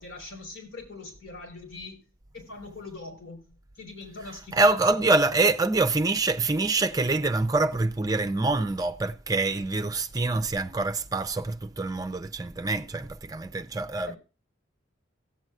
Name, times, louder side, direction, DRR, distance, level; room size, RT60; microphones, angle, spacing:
voice 1, 0.0-2.0 2.3-4.8 5.2-5.3 14.1-14.2, left 2 dB, 80° left, 4.9 m, -42 dB
voice 2, 4.5-14.2, right 3 dB, 20° right, 0.6 m, -25 dB
17.0 x 7.8 x 2.4 m
head